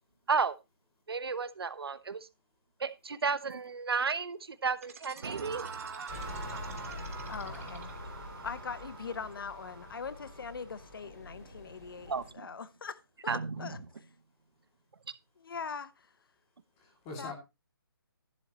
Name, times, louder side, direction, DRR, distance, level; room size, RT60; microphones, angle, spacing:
voice 1, 1.1-2.3 2.8-5.7 12.1-12.2 13.3-13.7, right 5 dB, 80° right, 0.9 m, -32 dB
sound 1, 4.8-8.3, right 7 dB, 35° right, 1.1 m, -52 dB
sound 2, 5.2-12.3, right 5 dB, 65° right, 1.3 m, -46 dB
sound 3, 6.1-12.3, left 2 dB, 45° left, 2.9 m, -46 dB
voice 2, 7.3-7.9 8.2-13.8 15.4-16.1 17.2-17.3, left 5 dB, 65° left, 0.8 m, -42 dB
voice 3, 16.8-17.3, left 2 dB, 15° left, 2.3 m, -43 dB
11.0 x 10.0 x 2.9 m
hypercardioid pair, 170°, 13 cm